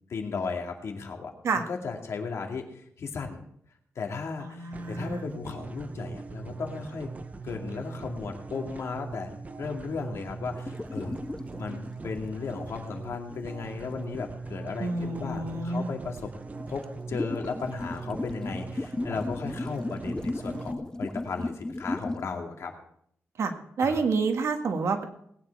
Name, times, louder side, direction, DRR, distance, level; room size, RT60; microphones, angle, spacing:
voice 1, 0.1-1.3 1.6-3.4 4.0-7.1 7.4-9.3 9.6-11.2 11.6-16.3 16.7-16.8 17.1-22.7 23.8-24.0, left 5 dB, 70° left, 2 dB, 2.3 m, -35 dB
voice 2, 4.4-5.2 14.8-15.9 23.4-23.5 23.8-25.0, right 4 dB, 70° right, 5 dB, 1.7 m, -28 dB
sound 1, 4.7-20.7, right 4 dB, 30° right, 0.8 m, -40 dB
sound 2, 10.5-12.1 13.7-13.8 16.1-16.2 16.5-22.3, left 2 dB, 15° left, 0.4 m, -35 dB
19.0 x 9.5 x 4.7 m, 0.69 s
wide cardioid pair, 155°, 5 cm